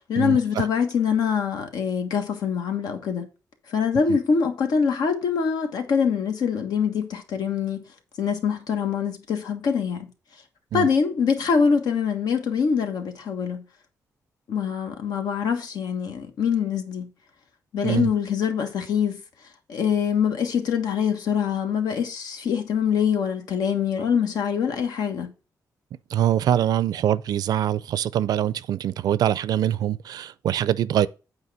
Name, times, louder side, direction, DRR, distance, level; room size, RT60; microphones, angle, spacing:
voice 1, 0.1-3.3 3.7-7.8 8.2-10.1 10.7-13.6 14.5-17.1 17.7-19.2 19.7-25.3, left 6 dB, 80° left, 1.5 m, -24 dB
voice 2, 26.1-31.1, right 11 dB, 75° right, 0.4 m, -23 dB
8.3 x 4.7 x 4.9 m
cardioid pair, 130°, 7 cm